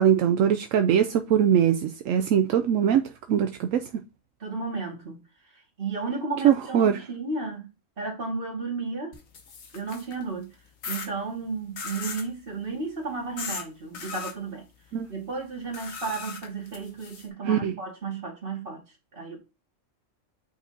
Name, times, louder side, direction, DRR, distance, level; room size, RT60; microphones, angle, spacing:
voice 1, 0.0-3.8 6.4-7.0 14.9-15.1 17.4-17.7, right 9 dB, 80° right, 1.0 m, -22 dB
voice 2, 4.4-5.2 5.5-7.7 8.0-9.2 9.7-10.5 10.9-14.7 15.1-18.8 19.1-19.4, right 4 dB, 45° right, 2.1 m, -33 dB
sound 1, 9.1-10.2 10.8-11.1 11.8-12.3 13.4-13.6 13.9-14.3 15.7-17.3, left 5 dB, 90° left, 1.6 m, -37 dB
8.5 x 4.2 x 2.7 m
omnidirectional pair, 1.4 m